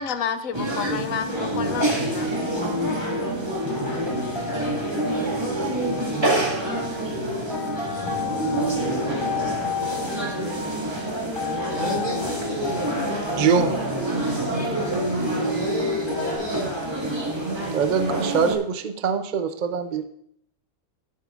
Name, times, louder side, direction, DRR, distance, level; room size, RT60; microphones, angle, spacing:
voice 1, 0.0-2.3, left 7 dB, 70° left, 9 dB, 1.1 m, -30 dB
sound 1, 0.5-18.5, right 1 dB, 20° right, 2.0 m, -27 dB
sound 2, 2.1-2.9 3.7-4.1 4.5-4.8 6.6-7.0, left 1 dB, 35° left, 2.8 m, -39 dB
sound 3, 2.1-16.4, left 2 dB, 15° left, 4.3 m, -31 dB
voice 2, 11.6-12.9 15.3-16.8, right 1 dB, 70° right, -3 dB, 4.4 m, -33 dB
voice 3, 13.4-13.8 17.7-20.0, right 6 dB, 50° right, 8 dB, 0.6 m, -23 dB
17.0 x 8.4 x 2.5 m, 0.71 s
omnidirectional pair, 1.5 m